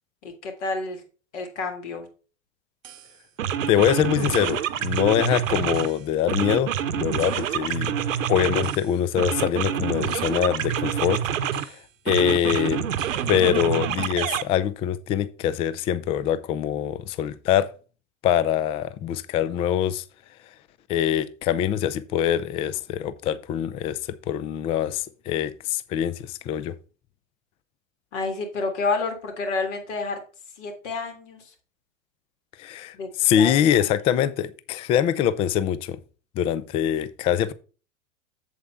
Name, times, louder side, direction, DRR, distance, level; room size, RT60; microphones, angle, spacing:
voice 1, 0.2-1.0 1.3-2.1 28.1-30.2 30.6-31.4 32.9-33.1 33.4-33.9, left 3 dB, 60° left, 3.3 m, -29 dB
sound 1, 2.8-3.0 3.4-5.9 6.3-8.8 9.2-11.7 12.1-14.4, right 8 dB, 70° right, 1.0 m, -27 dB
voice 2, 3.7-8.0 8.3-11.2 11.6-11.7 12.1-12.9 13.3-17.7 18.2-20.0 20.9-26.7 32.6-36.0 36.4-37.5, left 10 dB, 15° left, 0.3 m, -24 dB
7.9 x 7.6 x 3.5 m
figure-of-eight pair, 100°, 40 cm